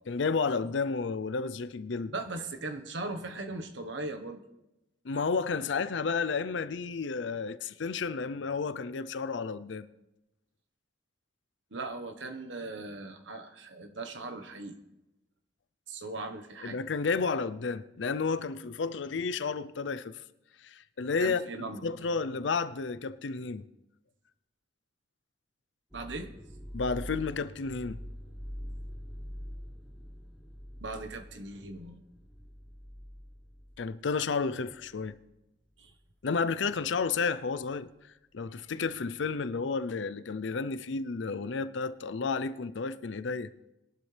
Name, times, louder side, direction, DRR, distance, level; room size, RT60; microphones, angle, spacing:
voice 1, 0.1-2.1 5.0-9.9 16.6-20.2 20.6-23.7 26.7-28.0 33.8-35.2 36.2-37.9 38.3-43.5, left 4 dB, 80° left, 0.6 m, -31 dB
voice 2, 2.1-4.4 11.7-14.8 15.9-16.8 21.2-21.8 25.9-26.3 30.8-32.0 35.8-35.9, right 2 dB, 85° right, 1.2 m, -39 dB
sound 1, 25.9-35.3 35.7-36.1 36.9-37.1, equal, ahead, 1.2 m, -45 dB
21.0 x 11.5 x 3.4 m
head